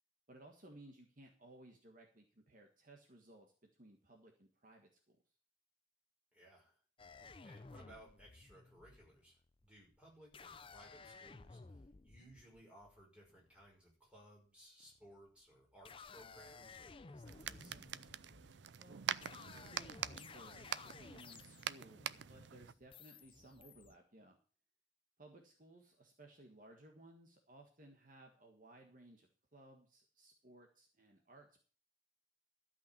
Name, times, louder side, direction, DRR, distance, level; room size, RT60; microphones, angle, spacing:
voice 1, 0.3-5.2 18.7-24.4 25.2-31.6, right 1 dB, 45° right, 2 dB, 1.6 m, -60 dB
voice 2, 6.3-6.8 7.4-18.2, equal, 5° right, -3 dB, 5.8 m, -62 dB
sound 1, 7.0-13.8 14.8-15.3 15.7-24.0, left 4 dB, 25° left, 0.5 m, -57 dB
sound 2, 17.3-22.7, right 9 dB, 65° right, 0.5 m, -45 dB
13.0 x 5.8 x 8.6 m, 0.42 s
head